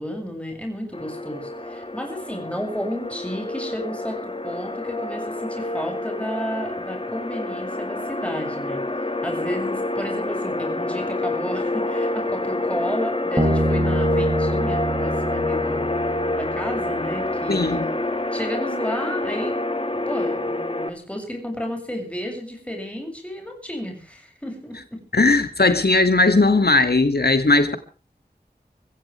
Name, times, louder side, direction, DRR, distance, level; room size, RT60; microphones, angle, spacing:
voice 1, 0.0-8.8 9.2-15.9 16.3-18.0 18.3-19.5 19.9-25.0, equal, 5° left, 2 dB, 6.9 m, -32 dB
sound 1, 0.9-20.9, left 2 dB, 35° left, 2.0 m, -27 dB
Bass guitar, 13.4-16.9, right 1 dB, 20° right, 5.3 m, -25 dB
voice 2, 17.5-17.8 25.1-27.8, left 3 dB, 75° left, 9 dB, 2.3 m, -18 dB
25.0 x 16.0 x 3.4 m, 0.38 s
wide cardioid pair, 45°, 16 cm